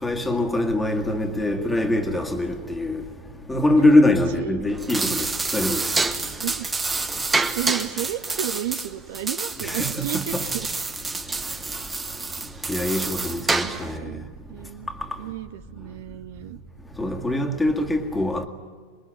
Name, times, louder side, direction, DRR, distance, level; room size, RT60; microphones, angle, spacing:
voice 1, 0.0-3.0 3.5-5.3 5.5-5.8 9.6-10.4 12.7-14.0 17.0-18.5, left 1 dB, 5° left, 2.1 m, -23 dB
voice 2, 4.4-4.8 6.4-6.7 7.3-10.7 13.6-14.2 14.5-14.9 15.2-16.6, right 13 dB, 55° right, 0.7 m, -33 dB
sound 1, 4.7-14.0, right 3 dB, 15° right, 1.3 m, -28 dB
27.5 x 21.5 x 9.1 m
figure-of-eight pair, 90°, 0 cm